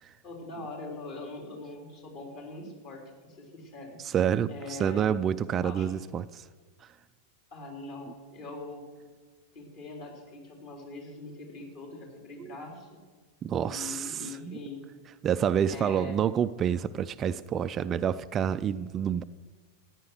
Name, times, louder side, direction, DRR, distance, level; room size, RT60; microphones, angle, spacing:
voice 1, 0.2-4.0 4.5-5.1 5.5-5.9 7.5-8.8 9.5-13.0 13.6-14.8 15.7-16.3, left 3 dB, 45° left, 1 dB, 3.6 m, -42 dB
voice 2, 4.0-6.5 6.8-6.9 12.4-12.6 13.4-14.6 15.2-19.2, right 8 dB, 25° right, 13 dB, 0.3 m, -28 dB
14.5 x 9.7 x 6.3 m, 1.5 s
figure-of-eight pair, 90°, 0 cm